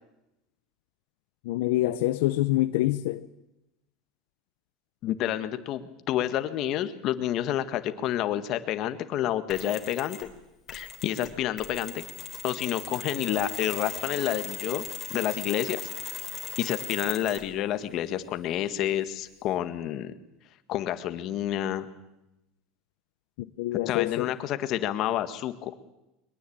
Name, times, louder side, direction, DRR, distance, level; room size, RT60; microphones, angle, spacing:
voice 1, 1.4-3.3 23.6-24.3, left 16 dB, 75° left, 0.8 m, -26 dB
voice 2, 5.0-10.3 10.7-12.0 12.4-14.8 15.1-15.8 16.6-20.1 20.7-21.9 23.9-25.7, left 12 dB, 45° left, 1.7 m, -29 dB
Mechanisms, 9.5-10.3 10.7-17.5, left 7 dB, 25° left, 3.7 m, -39 dB
22.5 x 21.5 x 8.8 m
supercardioid pair, 150°, 0 cm